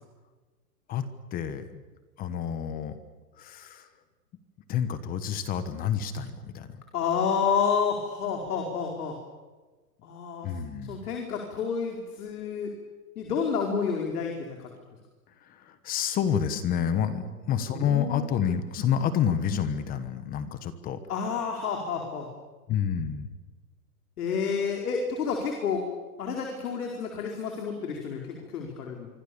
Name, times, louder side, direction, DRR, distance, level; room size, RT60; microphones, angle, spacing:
voice 1, 1.3-1.8 2.2-3.0 3.4-3.8 4.7-6.7 10.4-11.0 15.8-21.0 22.7-23.3, left 8 dB, 20° left, 12 dB, 1.3 m, -28 dB
voice 2, 6.9-9.1 10.0-10.5 10.8-12.7 13.2-14.3 14.6-14.7 17.6-18.3 21.1-22.3 24.2-25.8 26.2-29.1, left 6 dB, 65° left, 1 dB, 4.9 m, -29 dB
26.0 x 25.0 x 7.1 m, 1.3 s
hypercardioid pair, 160°, 48 cm